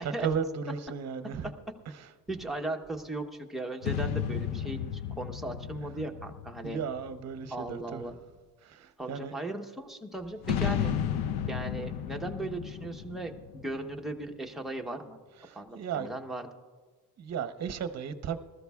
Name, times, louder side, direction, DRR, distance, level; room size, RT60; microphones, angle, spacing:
voice 1, 0.0-1.5 1.9-2.1 6.6-8.0 8.6-9.3 15.4-16.1 17.2-18.4, right 7 dB, 45° right, 10 dB, 0.8 m, -35 dB
voice 2, 2.3-6.8 7.5-8.1 9.0-10.9 11.5-15.2 15.5-16.5, right 2 dB, ahead, 1 dB, 0.9 m, -37 dB
sound 1, 3.8-7.5 10.4-14.2, left 9 dB, 80° left, 0.7 m, -33 dB
20.0 x 13.5 x 2.4 m, 1.4 s
cardioid pair, 120°, 38 cm